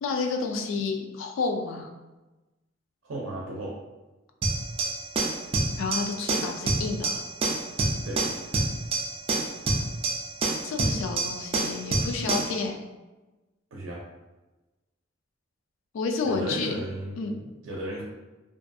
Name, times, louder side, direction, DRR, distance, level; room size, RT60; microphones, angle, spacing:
voice 1, 0.0-1.9 5.8-7.2 10.6-12.8 15.9-16.7 17.2-17.4, left 4 dB, 80° left, 3 dB, 0.3 m, -30 dB
voice 2, 3.0-3.8 8.0-8.2 13.7-14.0 16.2-18.0, right 1 dB, 85° right, -4 dB, 0.5 m, -34 dB
sound 1, 4.4-12.6, right 2 dB, 30° right, 0.3 m, -27 dB
2.5 x 2.5 x 2.2 m, 1.1 s
head